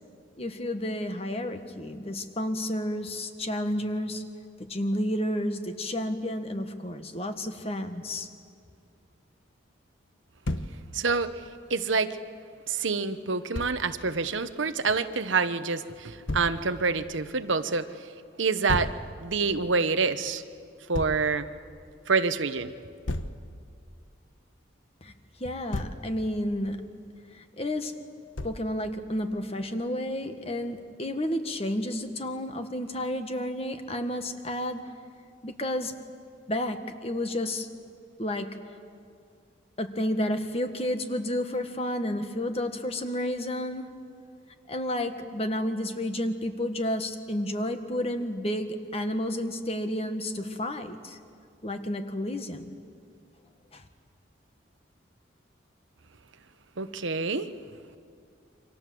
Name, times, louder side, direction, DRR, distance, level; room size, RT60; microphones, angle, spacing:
voice 1, 0.4-4.2 4.7-8.3 25.0-25.1 25.4-26.8 27.3-27.9 28.4-34.8 35.4-35.9 36.5-37.7 38.2-38.5 39.8-43.9 44.7-51.2 51.6-52.7 53.7-53.8, left 1 dB, 30° left, 7 dB, 1.6 m, -31 dB
Thump thud, 10.4-10.7 13.5-13.7 16.3-16.5 18.7-19.0 20.9-21.2 23.1-23.4 25.4-26.0 28.4-28.7, left 1 dB, 80° left, 1.2 m, -32 dB
voice 2, 10.9-11.3 11.7-12.2 12.7-17.9 18.4-18.9 19.2-20.4 20.9-21.5 22.1-22.7 56.8-57.5, right 4 dB, 80° right, 11 dB, 1.1 m, -27 dB
29.0 x 25.5 x 7.8 m, 2.3 s
head